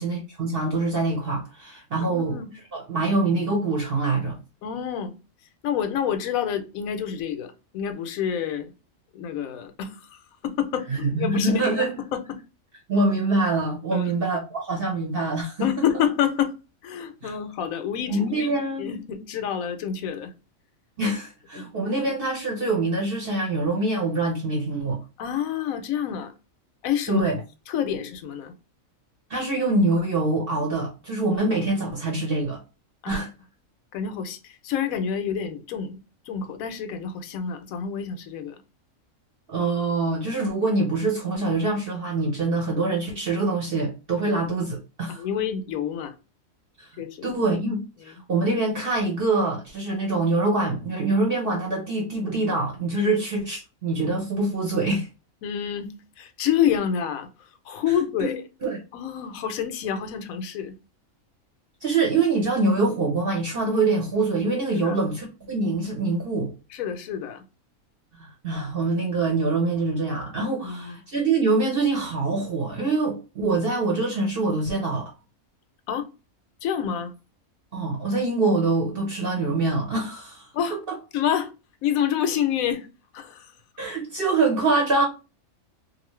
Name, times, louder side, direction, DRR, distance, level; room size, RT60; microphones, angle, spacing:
voice 1, 0.0-2.4 2.7-4.3 10.9-11.9 12.9-15.8 17.2-17.3 18.1-18.9 21.0-25.0 27.1-27.4 29.3-32.6 33.1-33.3 39.5-45.2 46.8-46.9 47.2-47.8 48.0-55.1 58.2-58.3 58.6-58.8 61.8-66.5 68.2-75.1 77.7-80.5 80.9-81.0 83.8-85.0, right 3 dB, 50° right, 0.9 m, -24 dB
voice 2, 2.0-2.5 4.6-5.1 5.6-8.7 9.1-11.9 12.1-12.4 13.9-14.2 15.6-16.5 16.8-18.5 18.8-20.3 21.6-21.7 25.2-26.3 26.8-27.2 27.7-28.5 33.0-33.2 33.9-36.0 36.3-38.6 45.1-46.1 47.0-47.3 48.0-48.1 53.0-53.2 55.4-58.4 58.9-60.7 64.7-65.0 66.7-67.4 70.6-71.0 75.9-76.1 76.6-77.1 80.5-80.8 81.1-81.5 81.8-82.9 83.1-83.5, left 8 dB, 85° left, 1.0 m, -28 dB
2.6 x 2.5 x 3.0 m
omnidirectional pair, 1.4 m